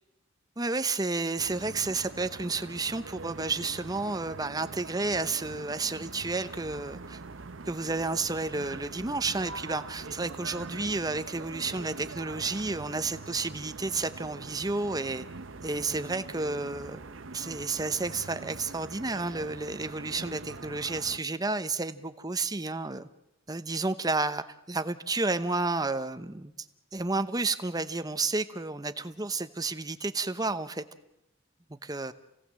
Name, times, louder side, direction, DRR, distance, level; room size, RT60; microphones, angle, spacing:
voice 1, 0.6-7.2 7.7-15.3 15.6-17.0 17.3-23.1 23.5-26.5 26.9-30.8 31.9-32.1, right 3 dB, 20° right, 11 dB, 0.9 m, -31 dB
sound 1, 1.4-21.2, right 3 dB, 90° right, 0.9 m, -43 dB
28.5 x 17.5 x 7.6 m, 0.95 s
head